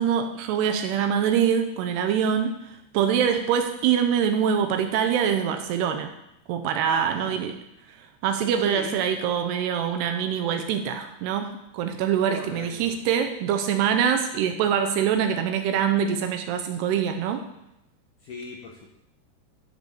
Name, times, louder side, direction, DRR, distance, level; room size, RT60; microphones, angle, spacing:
voice 1, 0.0-2.6 2.9-6.1 6.5-7.6 8.2-17.5, right 8 dB, 80° right, 6 dB, 2.6 m, -24 dB
voice 2, 6.8-7.4 8.7-9.0 12.3-12.9 18.2-19.0, left 4 dB, 70° left, -1 dB, 2.0 m, -38 dB
12.0 x 5.4 x 6.9 m, 0.84 s
omnidirectional pair, 5.1 m